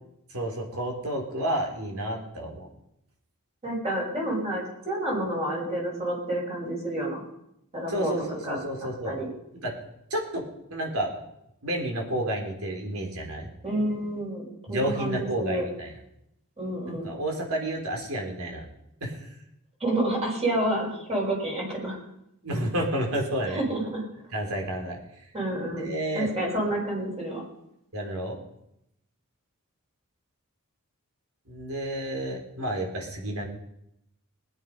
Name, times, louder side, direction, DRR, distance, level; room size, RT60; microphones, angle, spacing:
voice 1, 0.3-2.7 7.9-9.2 9.6-9.7 10.1-10.4 10.7-11.1 11.6-13.5 14.7-15.9 16.9-18.6 19.0-19.3 22.4-23.6 24.3-25.0 25.7-26.3 27.9-28.4 31.5-33.5, right 1 dB, 70° right, 0 dB, 3.7 m, -30 dB
voice 2, 3.6-7.2 7.7-8.6 9.0-9.3 13.6-15.6 16.6-17.1 19.8-22.0 23.5-24.0 25.3-27.4, right 1 dB, 30° right, -2 dB, 5.4 m, -29 dB
20.0 x 9.8 x 5.4 m, 0.81 s
head